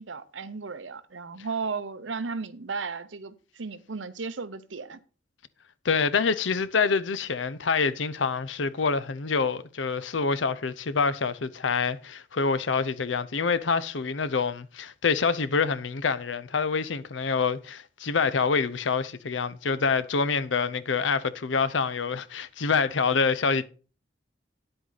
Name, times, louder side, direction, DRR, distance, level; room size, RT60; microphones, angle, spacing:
voice 1, 0.0-5.0, right 4 dB, 85° right, 0.9 m, -35 dB
voice 2, 5.8-23.7, left 5 dB, 80° left, 0.7 m, -26 dB
9.8 x 7.8 x 4.0 m
head